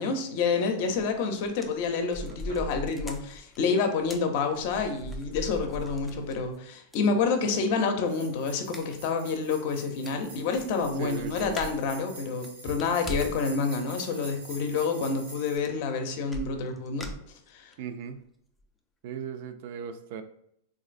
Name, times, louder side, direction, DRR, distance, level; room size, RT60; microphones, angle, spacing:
voice 1, 0.0-17.1 17.5-17.7, left 4 dB, 55° left, 6 dB, 0.6 m, -28 dB
sound 1, 1.0-1.2 1.4-6.6 6.9-7.0 8.7-9.0 9.4-9.5 9.8-9.9 10.1-11.9 12.3-13.5 13.8-14.1 15.3-15.4 15.6-15.9 16.3-17.7 18.2-18.3 18.6-18.7, equal, 10° left, 0.4 m, -40 dB
voice 2, 2.3-2.6 7.4-7.8 11.0-11.6 17.8-18.2 19.0-20.2, right 7 dB, 60° right, 9 dB, 0.4 m, -38 dB
sound 2, 8.1-15.6, right 1 dB, 80° right, 1.4 m, -47 dB
3.1 x 2.5 x 2.5 m, 0.72 s
hypercardioid pair, 120°, 0 cm